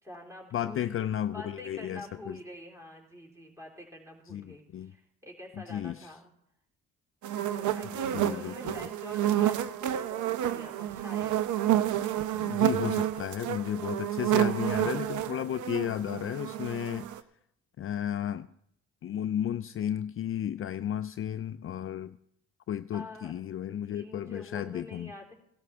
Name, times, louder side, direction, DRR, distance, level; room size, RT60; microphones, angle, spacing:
voice 1, 0.0-6.3 7.5-11.4 13.1-13.3 22.9-23.3 23.6-25.3, left 1 dB, 10° right, -1 dB, 3.5 m, -46 dB
voice 2, 0.5-2.4 4.3-4.9 5.5-6.1 8.1-8.8 12.3-17.1 17.8-18.5 19.0-22.2 22.7-25.1, left 10 dB, 45° left, 11 dB, 0.4 m, -33 dB
sound 1, 7.2-17.2, right 12 dB, 75° right, 0.7 m, -29 dB
17.0 x 12.5 x 3.5 m, 0.73 s
cardioid pair, 90°, 30 cm